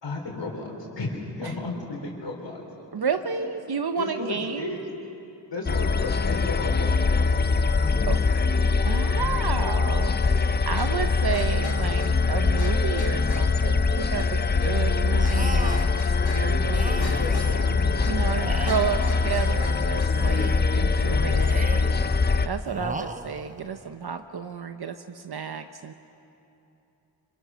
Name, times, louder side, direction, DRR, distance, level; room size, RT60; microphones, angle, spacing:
voice 1, 0.0-2.9 3.3-3.5 3.9-4.8 5.5-7.4 8.0-8.3 17.0-18.6 21.0-21.4, left 3 dB, 75° left, -1 dB, 3.8 m, -34 dB
voice 2, 2.9-4.8 8.0-8.3 8.7-17.1 18.0-22.2 22.4-25.9, right 6 dB, 60° right, 8 dB, 0.8 m, -32 dB
sound 1, 5.7-22.5, left 4 dB, 25° left, 0.5 m, -23 dB
sound 2, 10.8-20.2, left 2 dB, 60° left, 3.0 m, -42 dB
sound 3, 15.2-16.0 16.7-17.8 18.3-19.7 20.1-20.9 21.4-22.1 22.6-23.7, right 2 dB, 20° right, 0.9 m, -37 dB
25.5 x 23.5 x 6.2 m, 2.9 s
wide cardioid pair, 90°, 44 cm